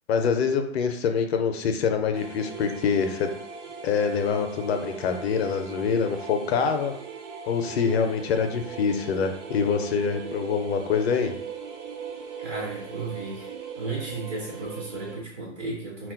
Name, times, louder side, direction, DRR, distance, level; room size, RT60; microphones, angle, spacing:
voice 1, 0.1-3.3 3.8-6.9 7.5-11.3, left 6 dB, 60° left, 6 dB, 0.5 m, -25 dB
sound 1, 2.1-15.2, right 6 dB, 70° right, 0.7 m, -39 dB
voice 2, 12.4-13.5 13.8-16.1, right 3 dB, 20° right, -2 dB, 0.4 m, -34 dB
2.2 x 2.0 x 3.5 m, 0.70 s
figure-of-eight pair, 110°, 37 cm